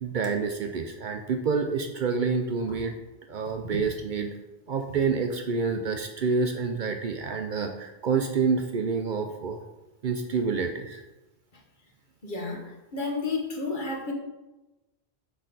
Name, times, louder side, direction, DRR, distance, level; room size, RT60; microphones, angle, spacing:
voice 1, 0.0-2.9 3.3-4.3 4.7-9.6 10.0-11.0, right 5 dB, 55° right, 5 dB, 0.6 m, -28 dB
voice 2, 12.2-14.1, left 3 dB, 50° left, 0 dB, 1.3 m, -31 dB
6.3 x 5.2 x 3.9 m, 1.0 s
omnidirectional pair, 1.1 m